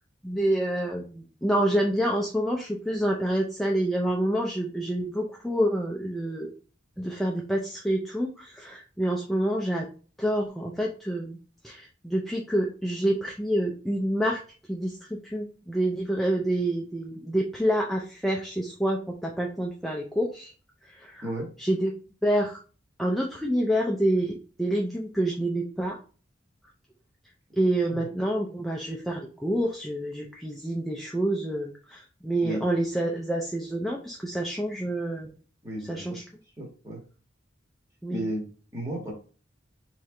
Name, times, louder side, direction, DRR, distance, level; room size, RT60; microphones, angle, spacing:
voice 1, 0.2-6.5 7.0-9.9 10.2-11.4 11.6-14.4 14.7-20.5 20.8-21.3 21.6-21.9 22.2-22.6 23.0-26.0 27.5-35.3 35.9-36.2 38.0-38.2, right 1 dB, ahead, -1 dB, 0.5 m, -27 dB
voice 2, 35.6-36.3 36.6-37.0 38.1-39.1, right 1 dB, 15° right, -2 dB, 1.5 m, -34 dB
4.4 x 3.3 x 3.7 m, 0.39 s
head